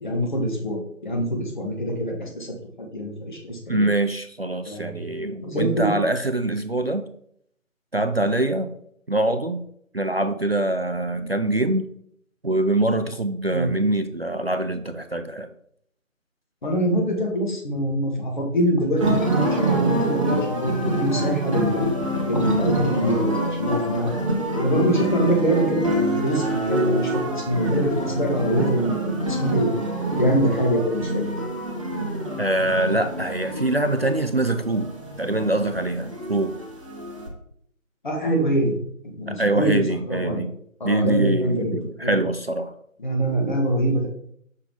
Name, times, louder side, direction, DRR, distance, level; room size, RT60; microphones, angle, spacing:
voice 1, 0.0-2.5 2.8-3.9 4.7-5.0 5.4-5.9 13.5-13.7 16.6-21.8 22.2-24.1 24.5-29.7 30.1-31.2 38.0-38.7 39.2-40.4 40.8-41.7 42.0-42.2 43.0-44.1, right 1 dB, 35° left, -1 dB, 1.7 m, -24 dB
voice 2, 3.7-7.0 7.9-8.7 9.1-9.6 9.9-11.9 12.4-15.5 32.4-34.9 35.2-36.5 39.3-40.5 40.8-42.7, right 2 dB, 50° right, 8 dB, 0.4 m, -24 dB
sound 1, 18.9-37.3, right 1 dB, 25° right, 1.1 m, -26 dB
6.5 x 5.1 x 3.5 m, 0.67 s
figure-of-eight pair, 160°, 41 cm